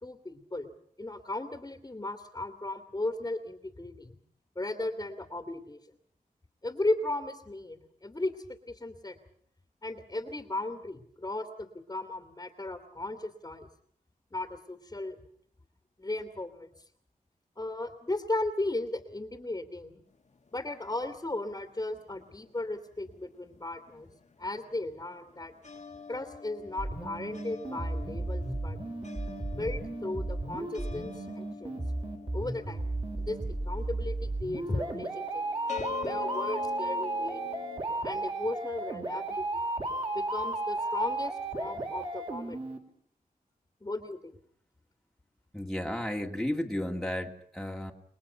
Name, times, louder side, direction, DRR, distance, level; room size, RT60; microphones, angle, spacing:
voice 1, 0.0-0.7 1.0-4.2 4.6-5.8 6.6-9.2 9.8-13.7 14.3-15.2 16.0-16.7 17.6-20.0 20.5-24.1 24.4-25.5 26.1-28.8 29.5-31.7 32.3-32.9 33.2-35.4 36.0-37.4 38.0-39.7 40.1-42.8 43.8-44.3, left 2 dB, 25° left, 6 dB, 2.4 m, -36 dB
sound 1, 20.1-22.8 23.0-37.8, left 4 dB, 50° left, 2.0 m, -45 dB
sound 2, 26.8-42.8, right 2 dB, 35° right, 4.6 m, -34 dB
voice 2, 45.5-47.9, left 1 dB, ahead, 0 dB, 2.4 m, -33 dB
30.0 x 21.0 x 5.7 m, 0.64 s
wide cardioid pair, 135°, 15 cm